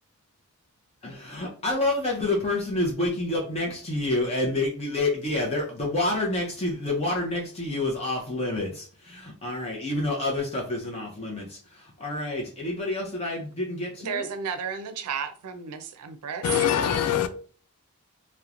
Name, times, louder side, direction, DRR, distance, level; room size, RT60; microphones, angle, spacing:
voice 1, 1.0-14.3, left 2 dB, 30° left, 0.5 m, -28 dB
voice 2, 14.0-16.5, right 6 dB, 85° right, 0.4 m, -33 dB
voice 3, 16.4-17.3, left 9 dB, 80° left, 0.3 m, -23 dB
2.9 x 2.1 x 2.4 m
head